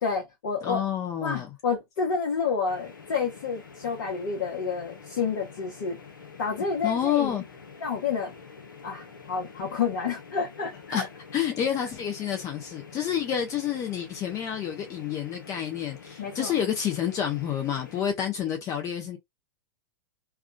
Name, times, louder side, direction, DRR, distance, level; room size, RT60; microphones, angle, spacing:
voice 1, 0.0-0.8 1.2-6.0 6.4-7.4 7.8-8.3 8.8-11.1 11.7-11.8 16.2-16.5, left 5 dB, 55° left, 1.3 m, -29 dB
voice 2, 0.6-1.5 6.8-7.4 10.9-11.1 11.3-19.2, left 9 dB, 30° left, 0.8 m, -29 dB
sound 1, 2.7-18.0, left 5 dB, 75° left, 1.0 m, -47 dB
3.5 x 2.4 x 2.2 m
figure-of-eight pair, 95°, 11 cm